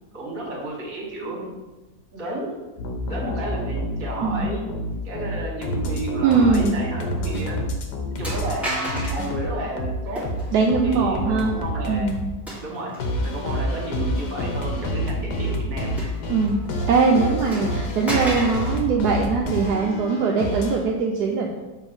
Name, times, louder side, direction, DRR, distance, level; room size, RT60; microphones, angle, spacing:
voice 1, 0.1-1.5 2.1-2.7 3.1-4.7 5.0-7.6 8.2-10.2 10.8-12.2 12.6-12.9 13.2-15.9, right 2 dB, 55° right, -2 dB, 2.1 m, -32 dB
sound 1, 2.8-8.6 8.8-12.3 13.0-20.8, equal, 80° left, 1.5 m, -28 dB
voice 2, 4.2-4.5 6.2-6.8 10.5-11.6 11.9-12.4 16.3-21.5, right 4 dB, 75° right, -1 dB, 1.2 m, -21 dB
sound 2, 7.3-7.4 8.2-9.4 10.1-10.6 12.5-13.2 13.8-13.9 16.0-16.7 17.0-17.1 17.5-18.8, equal, ahead, 1.7 m, -32 dB
7.3 x 3.5 x 5.3 m, 1.1 s
omnidirectional pair, 1.8 m